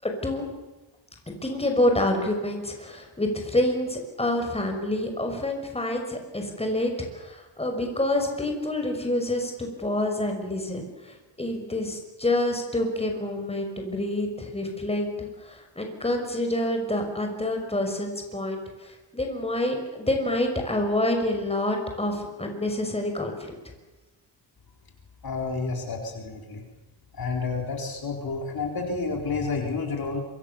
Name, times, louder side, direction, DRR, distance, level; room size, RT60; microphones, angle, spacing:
voice 1, 0.0-0.5 1.3-23.5, left 1 dB, 15° left, 3 dB, 6.0 m, -27 dB
voice 2, 25.2-26.6 27.1-30.2, left 4 dB, 50° left, 2 dB, 4.3 m, -30 dB
26.5 x 25.0 x 7.1 m, 1.1 s
wide cardioid pair, 140°, 45 cm